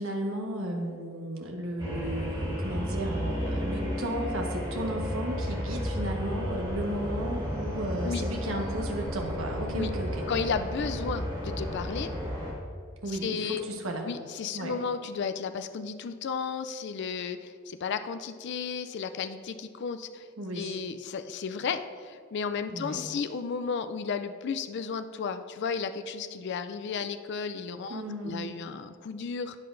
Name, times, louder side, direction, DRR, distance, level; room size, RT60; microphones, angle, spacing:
voice 1, 0.0-10.2 13.0-14.1 14.5-14.7 20.4-20.8 22.7-23.0 27.9-28.5, right 1 dB, 70° right, 1 dB, 1.2 m, -34 dB
sound 1, 1.8-12.5, equal, 20° right, 2.1 m, -33 dB
voice 2, 10.3-12.1 13.2-13.7 14.1-20.3 20.5-29.6, left 5 dB, 55° left, 9 dB, 0.4 m, -33 dB
13.0 x 8.7 x 2.6 m, 2.1 s
head